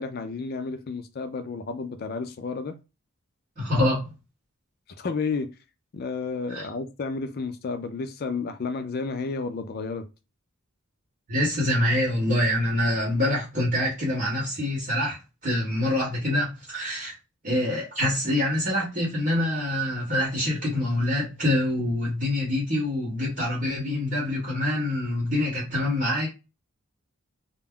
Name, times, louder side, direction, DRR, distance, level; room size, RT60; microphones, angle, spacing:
voice 1, 0.0-2.7 5.0-5.5 5.9-10.0, left 4 dB, 45° left, 0.3 m, -31 dB
voice 2, 3.6-4.1 6.5-6.7 11.3-15.2 15.4-17.1 17.4-26.3, left 1 dB, 40° right, 0.9 m, -25 dB
2.2 x 2.0 x 3.5 m
head